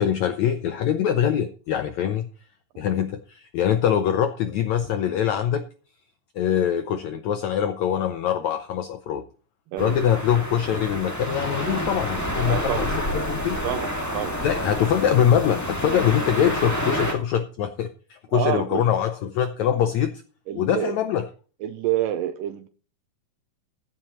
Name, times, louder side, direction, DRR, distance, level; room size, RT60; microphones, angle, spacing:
voice 1, 0.0-2.3 2.8-5.6 6.3-9.2 9.8-12.9 13.1-13.6 14.4-20.1 20.6-21.2, left 9 dB, 80° left, 1.6 m, -23 dB
sound 1, 9.8-17.1, equal, 10° left, 0.8 m, -28 dB
voice 2, 12.4-12.9 13.6-14.4 18.3-18.8 20.5-21.0 21.6-22.7, right 12 dB, 80° right, 2.3 m, -28 dB
16.0 x 10.5 x 3.1 m
omnidirectional pair, 4.1 m